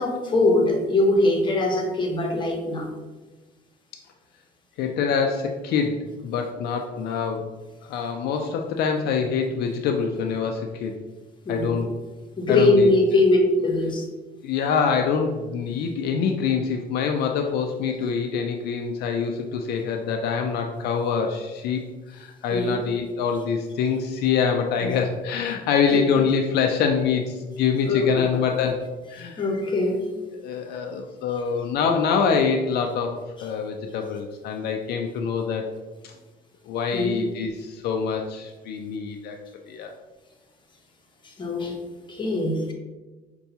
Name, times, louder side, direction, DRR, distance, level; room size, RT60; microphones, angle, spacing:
voice 1, 0.0-2.9 11.4-11.7 12.4-14.1 22.5-22.8 24.8-25.0 25.9-26.0 27.8-28.3 29.4-30.0 36.9-37.2 41.4-41.8 42.1-42.7, left 2 dB, 30° left, 1 dB, 0.8 m, -22 dB
voice 2, 4.8-7.5 7.9-11.0 11.5-11.9 12.5-12.9 14.4-29.4 30.4-35.6 36.0-36.1 36.7-39.4 39.7-39.9, left 6 dB, 75° left, 3 dB, 0.4 m, -25 dB
5.4 x 2.3 x 2.7 m, 1.2 s
cardioid pair, 110°, 17 cm